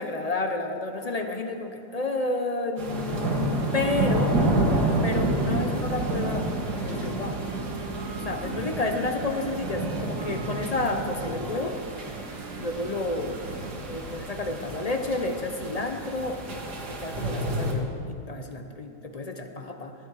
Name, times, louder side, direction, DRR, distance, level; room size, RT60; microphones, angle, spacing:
voice 1, 0.0-4.4 5.0-6.5 6.7-7.4 8.2-11.8 12.5-13.4 13.9-16.6 17.0-19.9, left 2 dB, 40° left, 5 dB, 0.6 m, -31 dB
sound 1, 2.8-17.7, right 2 dB, 80° right, 2.3 m, -29 dB
Wind instrument woodwind instrument, 5.1-14.0, right 4 dB, 55° right, 1.1 m, -45 dB
19.5 x 9.3 x 4.8 m, 2.5 s
omnidirectional pair, 1.7 m